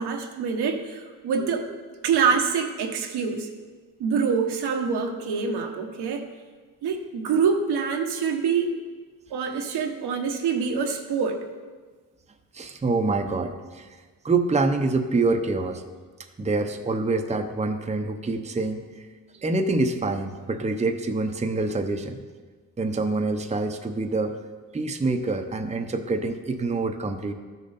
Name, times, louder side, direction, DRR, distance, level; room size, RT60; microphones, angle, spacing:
voice 1, 0.0-1.7 2.0-3.5 4.0-6.3 6.8-8.7 9.3-11.4, right 6 dB, 80° right, 4 dB, 1.3 m, -25 dB
voice 2, 12.5-13.9 14.2-15.8 16.4-19.1 19.3-22.2 22.8-24.4 24.7-27.3, right 3 dB, 15° right, 5 dB, 0.8 m, -26 dB
13.0 x 6.5 x 4.1 m, 1.4 s
cardioid pair, 90°, 39 cm